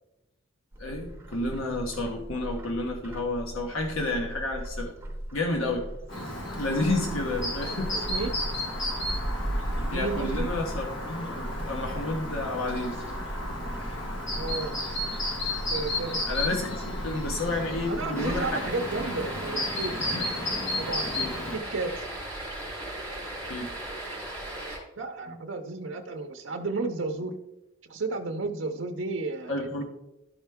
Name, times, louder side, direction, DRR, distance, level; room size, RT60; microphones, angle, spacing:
Bird, 0.7-18.5, right 1 dB, 10° right, 0.8 m, -37 dB
voice 1, 0.8-4.9 5.3-5.9 6.5-7.9 9.9-13.0 16.3-18.7 20.0-20.3 21.1-21.5 23.5-23.7 25.3-25.4 29.5-29.8, left 2 dB, 85° left, 2 dB, 1.1 m, -31 dB
Chirp tweet, 6.1-21.6, left 1 dB, 65° left, 1.7 m, -33 dB
voice 2, 7.9-8.3 9.9-10.5 14.3-14.7 15.7-16.2 17.9-20.0 20.8-21.1 21.5-22.1 25.0-27.4 27.8-29.8, right 3 dB, 65° right, 3 dB, 0.6 m, -32 dB
sound 1, 18.1-24.8, right 1 dB, 10° left, 2.4 m, -37 dB
12.0 x 4.4 x 3.5 m, 0.92 s
head